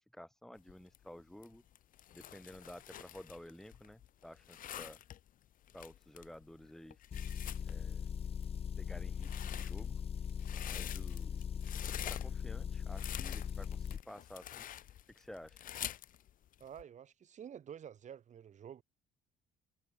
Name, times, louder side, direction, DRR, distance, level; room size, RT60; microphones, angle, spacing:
voice 1, 0.0-1.6 2.1-5.0 5.7-7.0 7.7-8.1 8.8-10.0 10.7-11.6 11.9-14.7 15.1-15.7, left 1 dB, ahead, 0.5 m, -53 dB
sound 1, 0.6-16.8, left 11 dB, 55° left, 1.0 m, -48 dB
Motor vehicle (road) / Engine, 7.1-14.0, left 7 dB, 35° left, 0.9 m, -40 dB
voice 2, 16.6-18.8, right 9 dB, 45° right, 1.7 m, -50 dB
cardioid pair, 110°, 17 cm